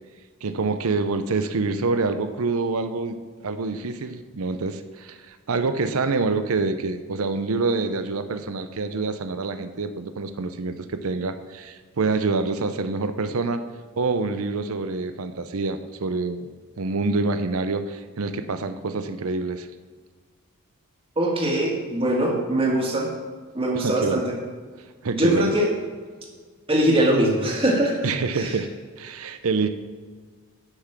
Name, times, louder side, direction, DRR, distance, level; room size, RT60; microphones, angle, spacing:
voice 1, 0.4-13.6 14.0-19.7 23.7-24.2 25.0-25.5 28.0-28.7 29.0-29.7, right 3 dB, 75° right, 9 dB, 0.6 m, -26 dB
voice 2, 21.2-23.1 23.5-24.4 25.1-25.7 26.7-28.1 28.4-28.5, right 1 dB, 25° right, -1 dB, 1.8 m, -22 dB
9.9 x 5.9 x 6.0 m, 1.5 s
head